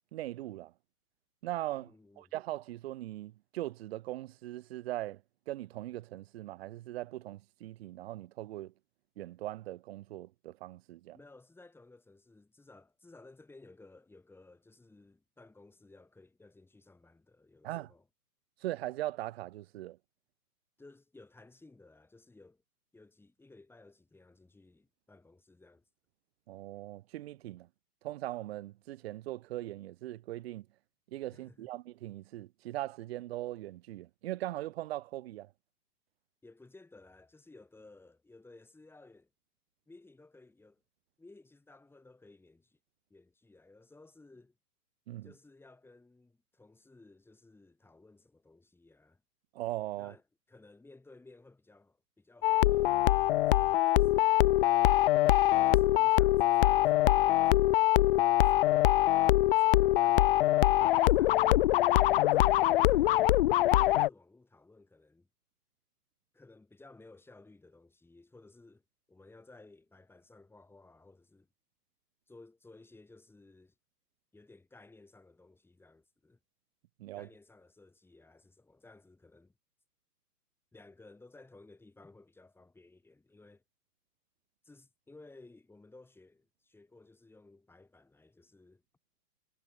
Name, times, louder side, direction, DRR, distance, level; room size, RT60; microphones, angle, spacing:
voice 1, 0.1-0.7 1.4-1.9 2.2-5.2 5.5-8.7 9.2-11.2 17.6-17.9 18.6-20.0 26.5-27.7 28.0-30.6 31.1-35.5 45.1-45.3 49.5-50.1 77.0-77.3, right 15 dB, 40° right, 1.4 m, -40 dB
voice 2, 1.8-2.3 11.1-18.1 20.8-22.6 22.9-25.8 31.3-31.7 36.4-39.3 39.9-40.8 41.2-42.8 43.1-44.6 45.2-49.2 50.0-50.2 50.5-54.5 55.7-59.0 59.5-61.5 62.3-63.2 63.5-65.3 66.3-68.8 69.1-71.5 72.3-73.7 74.3-76.4 77.1-79.5 80.7-83.6 84.6-88.8, left 2 dB, 5° left, 7.2 m, -57 dB
sound 1, 52.4-64.1, left 15 dB, 35° left, 1.0 m, -24 dB
figure-of-eight pair, 120°, 47 cm